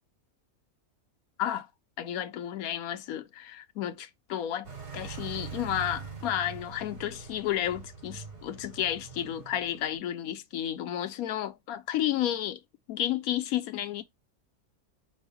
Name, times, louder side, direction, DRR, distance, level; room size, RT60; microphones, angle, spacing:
voice 1, 2.0-12.6 12.9-14.0, left 11 dB, 75° left, 1.1 m, -32 dB
sound 1, 4.6-10.0, right 6 dB, 65° right, 3.4 m, -43 dB
5.4 x 2.1 x 4.7 m
omnidirectional pair, 1.6 m